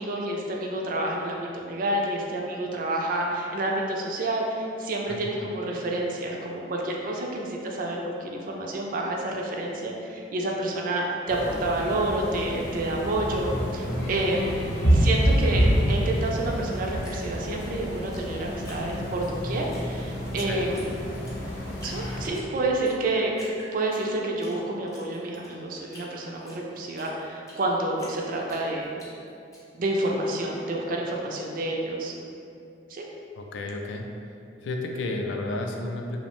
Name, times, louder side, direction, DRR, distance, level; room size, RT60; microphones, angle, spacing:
voice 1, 0.0-14.6 14.9-20.9 21.8-23.3 23.7-28.9 29.7-32.1 32.9-33.0, right 1 dB, 50° right, -1 dB, 0.3 m, -29 dB
sound 1, 11.3-22.3, equal, 65° left, 0.7 m, -27 dB
Drip, 17.0-19.3 19.7-20.4 20.7-20.9 21.1-22.0 22.3-23.0 23.3-24.5 24.9-27.7 28.0-29.6, left 1 dB, 20° left, 0.5 m, -47 dB
voice 2, 20.4-20.7 33.3-34.1 34.6-36.2, left 2 dB, 85° left, 2 dB, 0.3 m, -32 dB
2.6 x 2.1 x 2.9 m, 2.5 s
head